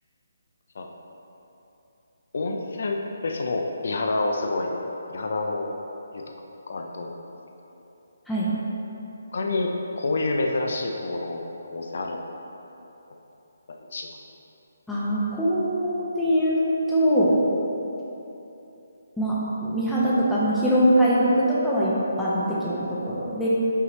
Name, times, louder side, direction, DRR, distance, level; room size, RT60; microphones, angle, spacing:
voice 1, 2.3-4.8 5.1-5.7 6.1-6.2 6.7-7.2 9.3-12.2 13.9-14.1, left 2 dB, 60° left, 2 dB, 0.5 m, -28 dB
voice 2, 14.9-16.6 16.9-17.3 19.2-21.9 22.2-23.5, equal, 5° left, -9 dB, 0.8 m, -22 dB
5.7 x 5.5 x 3.1 m, 3.0 s
figure-of-eight pair, 150°, 0 cm